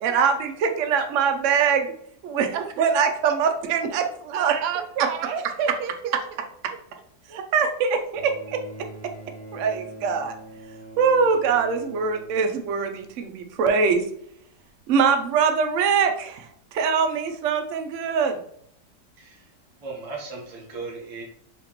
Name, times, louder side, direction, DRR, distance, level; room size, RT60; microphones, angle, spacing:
voice 1, 0.0-1.9 2.2-4.6 5.0-5.1 7.3-9.1 9.5-10.4 11.0-14.1 14.9-18.4, right 6 dB, 65° right, 5 dB, 0.8 m, -23 dB
voice 2, 4.3-6.1, right 7 dB, 90° right, 8 dB, 1.1 m, -29 dB
Bowed string instrument, 8.1-13.6 14.7-14.8, right 2 dB, 5° left, 0.7 m, -44 dB
voice 3, 19.2-19.5 19.8-21.2, right 4 dB, 30° right, -1 dB, 0.7 m, -37 dB
4.3 x 2.9 x 2.9 m, 0.68 s
omnidirectional pair, 1.7 m